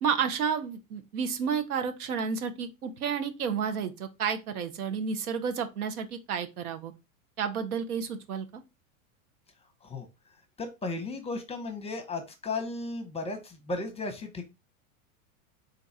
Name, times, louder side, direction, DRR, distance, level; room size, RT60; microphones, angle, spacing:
voice 1, 0.0-6.9 7.4-8.6, right 6 dB, 90° right, 0.8 m, -31 dB
voice 2, 10.6-14.4, left 3 dB, 15° left, 0.7 m, -35 dB
3.9 x 2.3 x 4.0 m
hypercardioid pair, 115°, 43 cm